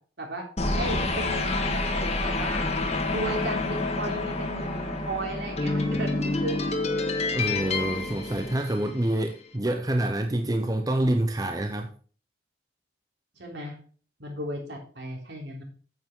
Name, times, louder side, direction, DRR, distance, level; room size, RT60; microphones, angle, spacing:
sound 1, 0.6-9.1, left 2 dB, 35° left, 1.7 m, -28 dB
voice 1, 0.7-2.7 3.1-7.0 13.4-13.8 14.2-15.6, right 1 dB, 65° right, 1 dB, 3.5 m, -35 dB
voice 2, 7.3-11.9, right 1 dB, 20° right, 5 dB, 0.7 m, -27 dB
9.2 x 8.3 x 3.7 m, 0.41 s
head